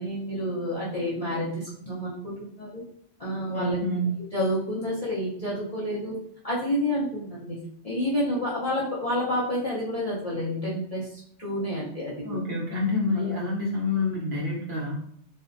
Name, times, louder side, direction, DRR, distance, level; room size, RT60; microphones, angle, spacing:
voice 1, 0.0-2.8 3.2-3.8 4.3-6.2 6.4-7.6 7.8-12.4 13.2-13.3, equal, 45° left, -9 dB, 0.5 m, -29 dB
voice 2, 3.5-4.1 12.2-14.9, left 2 dB, 50° right, -5 dB, 0.8 m, -27 dB
2.5 x 2.1 x 2.5 m, 0.66 s
omnidirectional pair, 1.2 m